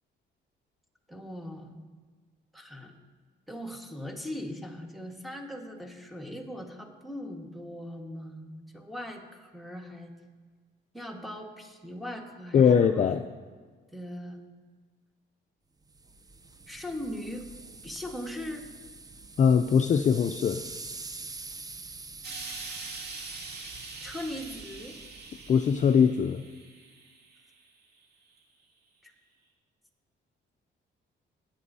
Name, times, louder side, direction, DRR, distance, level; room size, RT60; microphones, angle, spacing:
voice 1, 1.1-1.8 2.5-2.9 3.5-10.1 10.9-13.1 13.9-14.4 16.7-17.5 17.8-18.7 24.0-25.0 29.0-29.1, equal, ahead, 1 dB, 1.6 m, -39 dB
voice 2, 12.5-13.2 19.4-20.6 25.5-26.4, left 7 dB, 40° left, 8 dB, 0.4 m, -21 dB
sound 1, 15.9-26.2, right 3 dB, 20° right, 0.6 m, -46 dB
Explosion, 22.2-27.5 28.4-28.5, right 3 dB, 55° right, 2.2 m, -43 dB
18.0 x 8.4 x 2.7 m, 1.5 s
cardioid pair, 90°, 20 cm